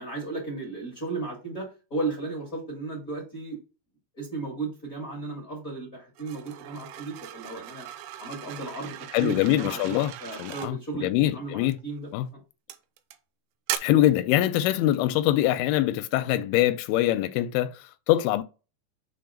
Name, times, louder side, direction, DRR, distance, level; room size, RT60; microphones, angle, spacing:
voice 1, 0.0-3.6 4.2-7.9 8.2-9.9 10.2-12.4, right 3 dB, 25° left, 1.9 m, -35 dB
sound 1, 6.2-10.7 11.7-12.0 12.7-13.2 13.7-13.8, right 12 dB, 80° right, 2.3 m, -38 dB
voice 2, 9.1-10.1 10.4-11.8 12.1-12.3 13.8-18.4, left 14 dB, 85° left, 2.2 m, -24 dB
6.9 x 3.4 x 5.1 m
omnidirectional pair, 5.0 m